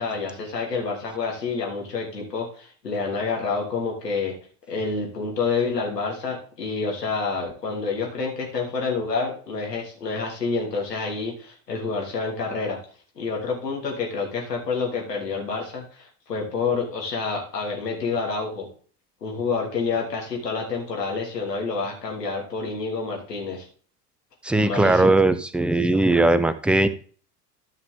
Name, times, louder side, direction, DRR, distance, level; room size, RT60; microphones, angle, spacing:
voice 1, 0.0-4.3 4.7-12.8 13.2-18.7 19.2-23.7 24.6-25.2, left 4 dB, 80° left, 0 dB, 3.0 m, -28 dB
voice 2, 24.4-26.9, right 2 dB, ahead, 12 dB, 0.5 m, -19 dB
13.5 x 5.8 x 3.6 m, 0.42 s
figure-of-eight pair, 75°, 48 cm